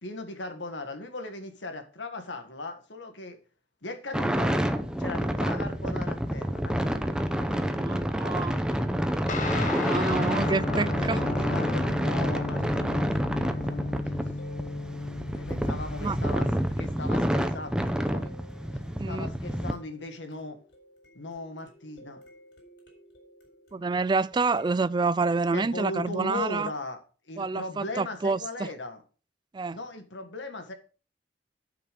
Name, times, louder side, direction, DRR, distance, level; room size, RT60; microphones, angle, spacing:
voice 1, 0.0-3.4 3.8-4.6 5.0-7.5 7.9-8.7 9.5-14.2 15.4-18.3 19.1-20.6 21.2-22.2 25.5-27.0 27.3-29.0 29.7-30.7, left 2 dB, 80° left, 1.7 m, -38 dB
sound 1, 4.1-19.7, equal, 5° right, 0.7 m, -28 dB
voice 2, 7.7-8.6 9.9-11.2 16.0-16.2 19.0-19.3 23.7-26.7 27.4-28.7 29.5-29.8, right 4 dB, 25° right, 0.3 m, -28 dB
Guitar, 9.3-17.0, left 3 dB, 45° left, 1.2 m, -34 dB
sound 2, 10.0-25.1, right 1 dB, 65° left, 4.3 m, -55 dB
10.5 x 5.8 x 5.2 m
head